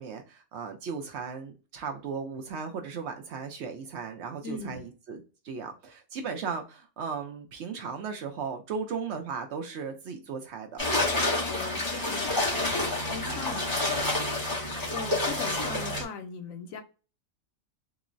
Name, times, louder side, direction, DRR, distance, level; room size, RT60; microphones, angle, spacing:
voice 1, 0.0-11.2, right 5 dB, 65° right, 5 dB, 0.7 m, -36 dB
voice 2, 4.4-4.8 11.5-12.4 13.1-13.6 14.5-16.8, left 5 dB, 80° left, 7 dB, 1.0 m, -39 dB
sound 1, 10.8-16.0, left 2 dB, 20° left, 0.8 m, -28 dB
3.7 x 2.0 x 2.4 m, 0.34 s
omnidirectional pair, 1.4 m